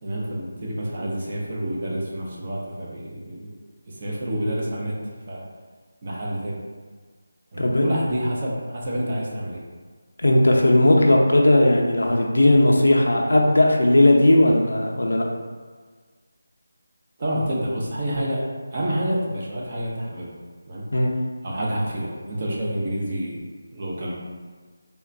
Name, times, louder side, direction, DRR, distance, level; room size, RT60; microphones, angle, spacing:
voice 1, 0.0-3.5 3.8-5.0 5.3-5.5 6.0-6.6 7.5-9.6 17.2-20.4 20.7-20.9 21.4-23.4 23.7-24.1, right 1 dB, 40° right, -4 dB, 0.6 m, -28 dB
voice 2, 10.2-15.3 20.9-21.1, left 1 dB, 85° left, 0 dB, 0.5 m, -17 dB
3.5 x 2.2 x 2.6 m, 1.5 s
figure-of-eight pair, 165°, 0 cm